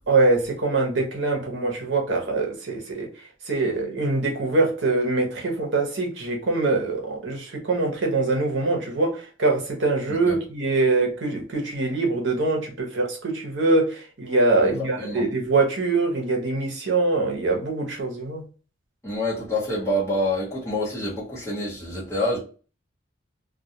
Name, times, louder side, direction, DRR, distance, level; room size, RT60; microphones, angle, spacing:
voice 1, 0.1-3.1 3.5-18.4, right 3 dB, 70° right, 0.8 m, -23 dB
voice 2, 14.6-15.2 19.0-22.4, left 1 dB, 15° left, 1.1 m, -27 dB
2.3 x 2.2 x 2.7 m
head